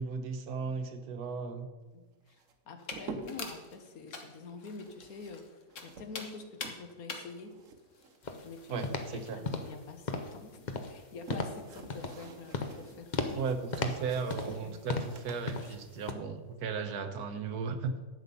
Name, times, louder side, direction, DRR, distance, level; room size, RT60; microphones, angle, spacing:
voice 1, 0.0-1.7 8.7-9.4 13.3-17.9, right 5 dB, 85° right, 8 dB, 1.5 m, -36 dB
voice 2, 1.9-7.5 8.4-13.4 14.6-15.0, left 4 dB, 75° left, 7 dB, 1.6 m, -47 dB
sound 1, 2.3-3.6 4.7-7.0 7.3-9.2 9.4-10.3 10.8-16.9, right 4 dB, 60° right, 1.3 m, -48 dB
sound 2, 2.8-9.4, left 4 dB, 55° left, 1.5 m, -46 dB
sound 3, 8.2-8.5 8.8-9.1 9.4-9.8 10.1-10.4 10.7-11.0 11.3-11.6 11.9-12.3 12.5-12.8 13.1-13.4 13.7-14.6 14.9-15.2 15.5-15.8 16.1-16.2, left 3 dB, 35° left, 0.8 m, -35 dB
11.0 x 7.8 x 5.4 m, 1.2 s
omnidirectional pair, 1.6 m